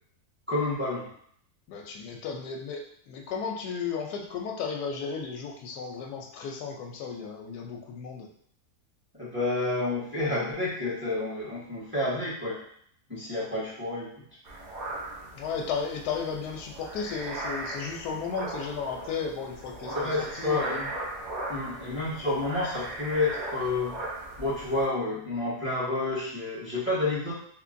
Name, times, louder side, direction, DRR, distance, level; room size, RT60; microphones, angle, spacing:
voice 1, 0.5-1.1 9.1-12.6 13.1-14.1 19.8-20.9 21.5-24.0 24.4-27.3, left 2 dB, 10° right, -9 dB, 1.2 m, -29 dB
voice 2, 1.7-8.3 15.3-20.0 20.3-20.8, left 6 dB, 90° left, 3 dB, 1.2 m, -34 dB
sound 1, 14.5-24.9, right 2 dB, 50° right, 0.8 m, -38 dB
3.6 x 3.0 x 2.5 m, 0.64 s
omnidirectional pair, 1.6 m